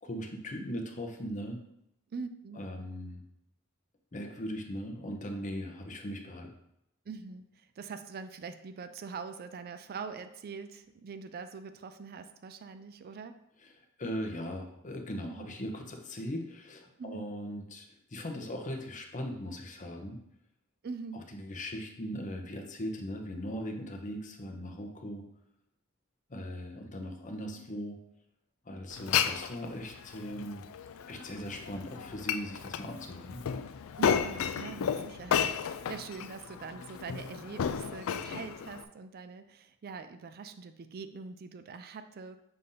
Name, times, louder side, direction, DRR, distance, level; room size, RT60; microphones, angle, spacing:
voice 1, 0.0-1.6 2.5-3.2 4.1-6.5 14.0-17.9 18.1-20.2 21.3-25.2 26.3-28.0 28.6-30.6 31.1-33.4, equal, 35° left, 3 dB, 0.8 m, -39 dB
voice 2, 2.1-2.6 7.1-13.4 15.3-15.5 17.0-17.2 20.8-21.3 34.0-42.4, right 5 dB, 45° right, 9 dB, 0.4 m, -43 dB
Glass, 28.9-38.8, left 7 dB, 70° left, 0.4 m, -33 dB
6.6 x 2.7 x 5.5 m, 0.81 s
head